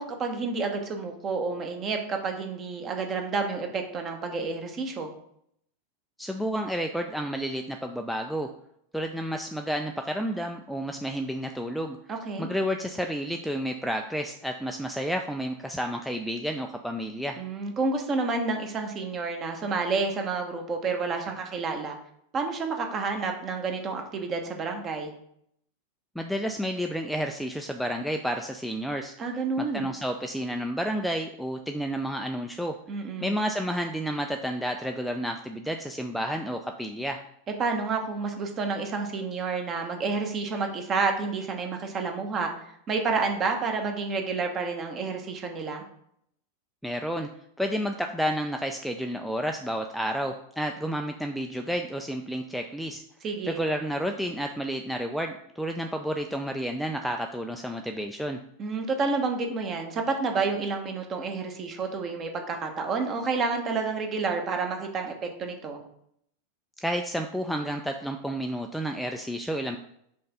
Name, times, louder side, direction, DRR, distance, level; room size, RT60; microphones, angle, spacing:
voice 1, 0.0-5.1 12.1-12.5 17.4-22.0 22.3-25.1 29.2-29.9 32.9-33.4 37.6-42.5 42.9-45.8 53.2-53.6 58.6-65.8, right 4 dB, 30° right, 4 dB, 1.0 m, -29 dB
voice 2, 6.2-8.5 8.9-12.0 12.4-17.4 26.2-29.1 29.6-32.8 33.2-37.2 46.8-47.3 47.6-53.0 53.4-58.4 66.8-69.8, equal, ahead, 4 dB, 0.4 m, -31 dB
5.3 x 3.4 x 5.4 m, 0.71 s
figure-of-eight pair, 90°, 0 cm